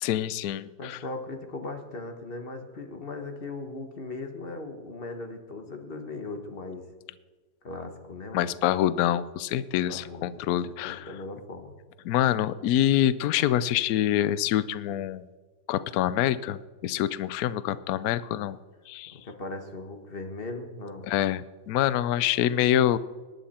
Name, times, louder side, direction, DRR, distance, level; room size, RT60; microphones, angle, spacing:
voice 1, 0.0-1.0 8.3-11.0 12.0-15.3 15.7-18.6 18.9-19.2 21.1-23.0, left 12 dB, 70° left, 16 dB, 0.8 m, -26 dB
voice 2, 0.8-6.8 7.6-8.5 9.9-11.8 19.1-21.1, left 2 dB, 30° left, 5 dB, 1.4 m, -38 dB
19.0 x 11.0 x 4.3 m, 1.3 s
omnidirectional pair, 2.1 m